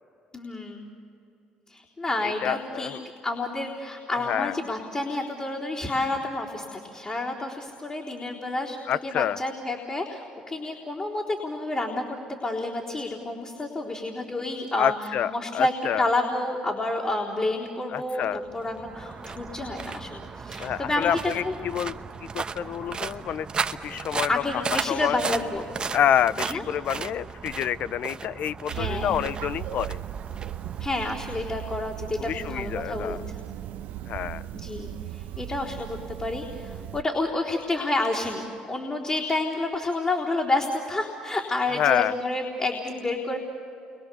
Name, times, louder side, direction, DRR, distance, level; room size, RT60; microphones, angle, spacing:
voice 1, 0.3-0.9 1.7-2.9 3.2-8.8 9.0-12.2 12.4-14.9 15.3-21.5 24.3-25.6 26.5-26.6 28.7-29.2 30.8-33.4 34.5-43.4, left 2 dB, 30° left, -4 dB, 3.9 m, -29 dB
voice 2, 2.2-3.0 4.3-4.6 8.9-9.4 14.8-16.0 17.9-18.4 20.6-21.9 22.2-23.5 23.8-24.4 24.9-25.2 25.9-30.0 32.2-33.2 34.1-34.4 41.7-42.1, left 10 dB, 60° left, 17 dB, 0.6 m, -27 dB
sound 1, 18.3-31.7, right 5 dB, 35° right, 1.0 m, -36 dB
sound 2, 28.7-37.0, right 12 dB, 75° right, 0.9 m, -37 dB
30.0 x 24.0 x 7.0 m, 2.9 s
supercardioid pair, 75°, 3 cm